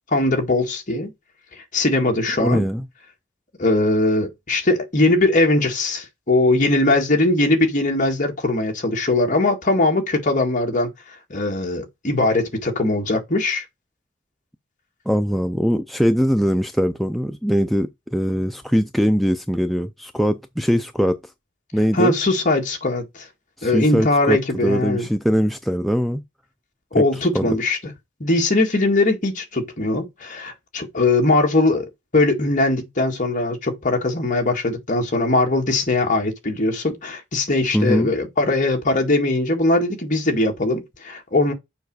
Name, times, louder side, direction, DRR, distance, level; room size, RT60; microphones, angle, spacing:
voice 1, 0.1-1.1 1.7-2.6 3.6-10.9 11.3-13.6 21.9-23.3 23.6-25.1 26.9-27.8 28.2-41.5, left 2 dB, 40° left, 1.8 m, -20 dB
voice 2, 2.4-2.8 15.1-21.2 21.7-22.1 23.6-26.2 27.0-27.1 27.3-27.6 37.7-38.1, equal, ahead, 0.3 m, -21 dB
7.0 x 4.9 x 4.8 m
head